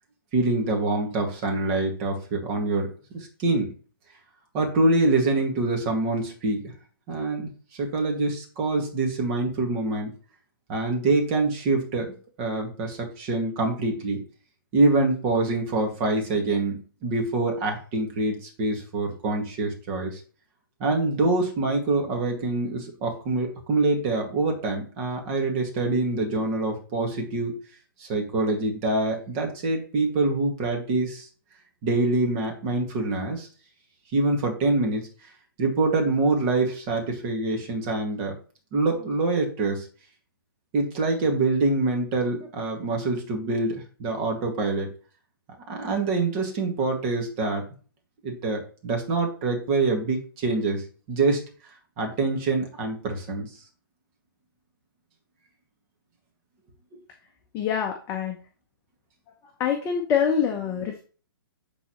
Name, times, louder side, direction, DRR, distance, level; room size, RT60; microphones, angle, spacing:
voice 1, 0.3-3.7 4.5-6.7 7.1-10.1 10.7-14.2 14.7-20.2 20.8-27.5 28.0-31.3 31.8-33.5 34.1-35.1 35.6-38.4 38.7-39.9 40.7-44.9 45.7-47.6 48.2-51.4 52.0-53.5, right 3 dB, 35° right, 1 dB, 2.0 m, -25 dB
voice 2, 57.5-58.3 59.6-61.0, left 7 dB, 20° left, 2 dB, 0.8 m, -25 dB
9.8 x 4.0 x 3.1 m, 0.38 s
hypercardioid pair, 140°, 12 cm